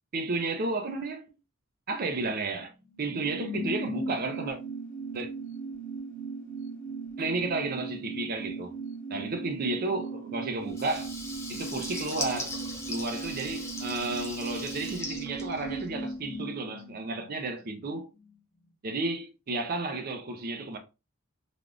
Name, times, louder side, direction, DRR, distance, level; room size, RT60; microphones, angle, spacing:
voice 1, 0.1-1.3 1.9-2.7 3.0-4.6 5.1-5.3 7.2-8.7 9.1-11.1 11.5-12.6 12.9-18.1 18.8-20.8, right 3 dB, 45° right, 0.5 m, -32 dB
sound 1, 2.7-17.9 18.2-18.3, right 3 dB, 40° left, 0.9 m, -38 dB
Water tap faucet / Liquid, 10.7-16.2, left 2 dB, 15° left, 0.6 m, -39 dB
3.4 x 2.4 x 2.4 m
head